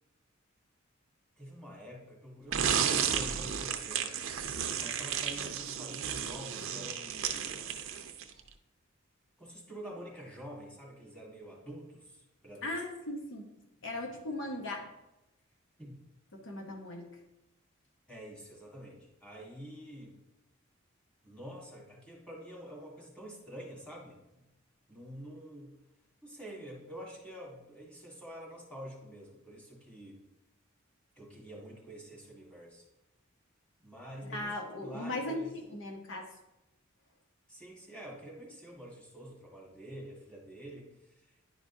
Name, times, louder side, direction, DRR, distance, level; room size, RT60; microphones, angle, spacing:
voice 1, 1.4-4.2 4.8-7.8 9.4-12.8 15.8-16.0 18.1-20.2 21.2-24.4 24.9-25.7 26.2-30.2 31.1-32.9 33.8-34.5 34.8-35.5 37.5-41.5, right 1 dB, 5° left, -3 dB, 1.6 m, -47 dB
sound 1, 2.5-8.4, right 8 dB, 70° right, 0.6 m, -33 dB
voice 2, 12.6-13.5 13.8-14.9 16.3-17.2 34.2-35.4 35.7-36.4, left 1 dB, 65° left, 2 dB, 1.0 m, -38 dB
10.5 x 5.0 x 2.7 m, 0.93 s
head